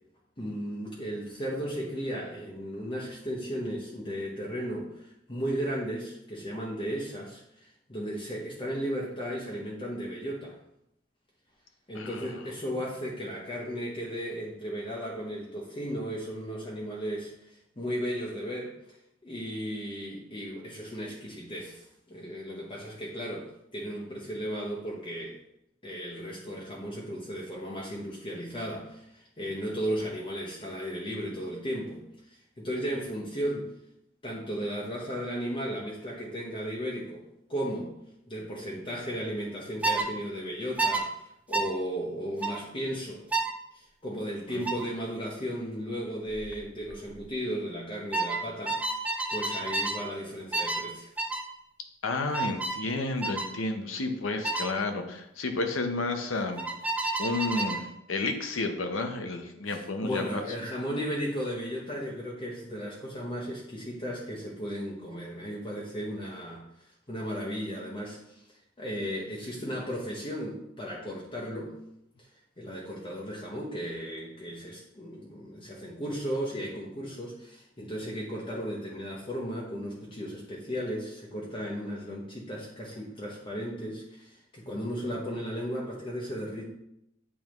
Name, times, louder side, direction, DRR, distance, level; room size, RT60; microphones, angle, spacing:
voice 1, 0.4-10.6 11.9-18.8 19.2-25.4 25.8-32.0 32.6-33.7 34.2-37.2 37.5-37.9 38.3-41.1 41.5-43.2 43.7-51.1 59.7-66.7 67.1-68.4 68.8-71.8 72.6-86.7, equal, 25° left, -4 dB, 0.9 m, -35 dB
voice 2, 11.9-12.3 44.5-44.7 52.0-56.6 57.2-60.4, left 3 dB, 80° left, 6 dB, 0.8 m, -31 dB
sound 1, 39.8-40.1 40.8-41.0 41.5-41.7 42.4-42.6 43.3-43.5 44.6-44.9 46.3-46.6 46.8-47.2 48.1-50.0 50.5-50.9 51.2-51.5 52.3-52.8 53.2-53.5 54.4-54.7 56.6-57.8, right 3 dB, 5° right, 0.5 m, -30 dB
8.6 x 3.6 x 3.0 m, 0.80 s
head